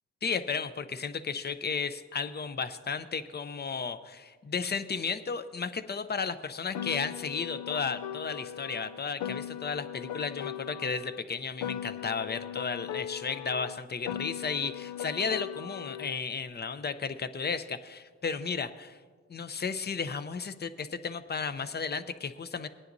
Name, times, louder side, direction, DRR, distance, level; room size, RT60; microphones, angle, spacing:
voice 1, 0.2-19.0 19.3-22.7, left 5 dB, 35° left, 12 dB, 0.6 m, -34 dB
Piano, 6.7-11.2 11.6-16.2, left 10 dB, 85° left, 0.5 m, -39 dB
19.5 x 9.9 x 2.7 m, 1.5 s
cardioid pair, 85°, 29 cm